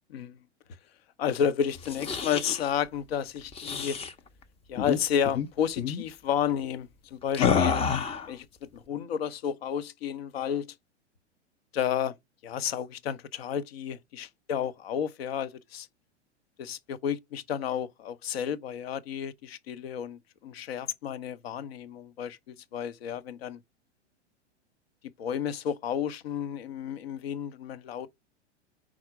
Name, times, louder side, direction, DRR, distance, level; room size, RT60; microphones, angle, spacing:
voice 1, 1.2-4.0 4.7-7.9 8.3-10.7 11.7-12.2 12.4-15.9 16.6-23.6 25.2-28.1, left 8 dB, 60° left, 0.8 m, -31 dB
sound 1, 1.8-2.6 3.5-4.1 4.8-5.0 5.2-5.5 5.8-6.0 7.3-8.3, left 6 dB, 15° left, 0.6 m, -28 dB
4.9 x 4.2 x 4.7 m
figure-of-eight pair, 100°, 35 cm